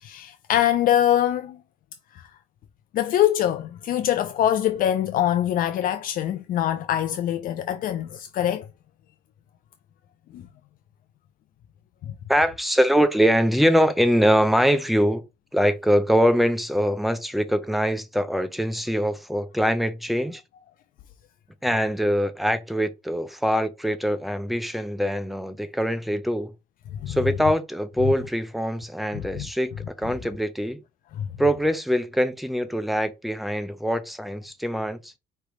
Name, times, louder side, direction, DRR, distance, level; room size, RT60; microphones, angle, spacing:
voice 1, 0.0-1.6 2.1-2.3 2.9-8.7 10.3-10.4 27.0-27.2 29.1-29.5 31.2-31.3, left 11 dB, 55° left, 0.4 m, -23 dB
voice 2, 12.3-15.2 15.5-20.4 21.6-26.5 27.1-30.8 31.4-35.1, equal, ahead, 0.6 m, -23 dB
4.7 x 3.3 x 3.1 m
cardioid pair, 110°, 17 cm